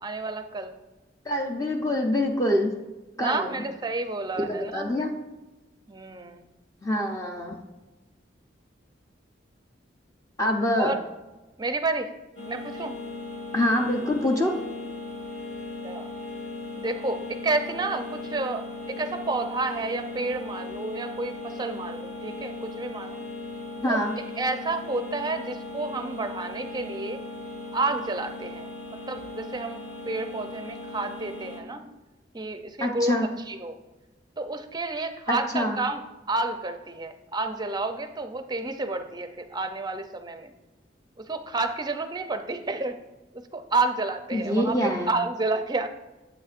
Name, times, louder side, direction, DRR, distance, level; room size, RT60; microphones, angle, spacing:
voice 1, 0.0-0.7 3.2-5.0 5.9-6.4 10.8-11.0 11.6-12.1 12.5-13.0 15.8-16.1 16.8-23.2 23.8-24.0 24.4-27.2 27.7-28.7 29.1-31.8 32.3-33.1 33.5-33.8 34.4-36.0 36.3-40.5 41.2-43.0 43.5-45.9, right 3 dB, 20° right, 7 dB, 0.5 m, -30 dB
voice 2, 1.2-2.7 3.2-3.6 4.4-5.1 6.8-7.5 10.4-10.9 13.5-14.5 23.8-24.2 32.8-33.3 35.3-35.8 44.3-45.1, left 1 dB, 15° left, 2 dB, 0.6 m, -25 dB
sound 1, 12.4-31.6, left 2 dB, 75° left, 1.6 m, -38 dB
9.1 x 8.0 x 2.5 m, 1.1 s
head